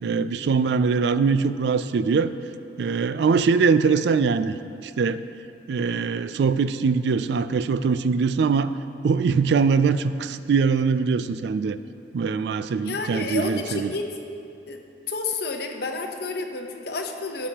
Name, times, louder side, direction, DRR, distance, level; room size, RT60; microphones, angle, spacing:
voice 1, 0.0-2.3 2.8-4.6 4.8-5.2 5.7-8.7 9.0-11.8 12.1-13.9, right 5 dB, 65° right, 13 dB, 0.3 m, -22 dB
voice 2, 12.7-14.1 14.7-14.8 15.1-17.5, left 3 dB, 60° left, 3 dB, 0.8 m, -30 dB
14.0 x 8.1 x 2.9 m, 2.6 s
head